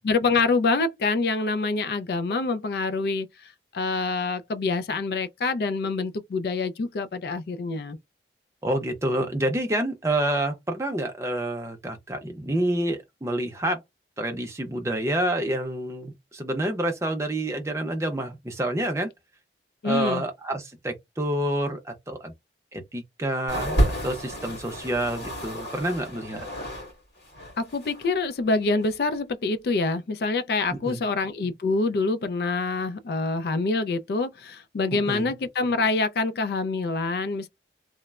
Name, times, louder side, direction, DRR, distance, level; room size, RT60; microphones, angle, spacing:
voice 1, 0.0-3.3 3.7-8.0 19.8-20.2 27.6-37.5, left 3 dB, 60° left, 0.3 m, -26 dB
voice 2, 8.6-13.8 14.2-19.1 19.8-22.3 22.7-23.8 24.0-26.5 30.8-31.0 34.9-35.3, right 1 dB, 15° right, 0.6 m, -28 dB
sound 1, 23.5-26.9 27.2-28.1 28.8-28.9, right 1 dB, 75° left, 1.7 m, -29 dB
3.1 x 2.0 x 2.3 m
head